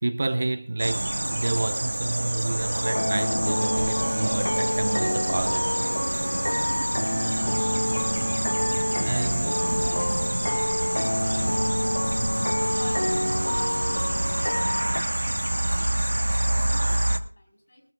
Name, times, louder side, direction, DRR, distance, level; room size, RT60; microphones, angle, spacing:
voice 1, 0.0-5.9 9.0-9.5, right 2 dB, 30° right, 0.5 m, -29 dB
sound 1, 0.8-17.2, right 1 dB, 65° right, 1.2 m, -27 dB
sound 2, 2.8-15.0, left 1 dB, 75° left, 0.7 m, -28 dB
sound 3, 3.4-12.7, right 2 dB, 15° right, 1.1 m, -46 dB
voice 2, 9.0-14.6 15.1-17.8, left 1 dB, 35° left, 4.2 m, -46 dB
23.0 x 13.5 x 2.4 m
figure-of-eight pair, 175°, 0 cm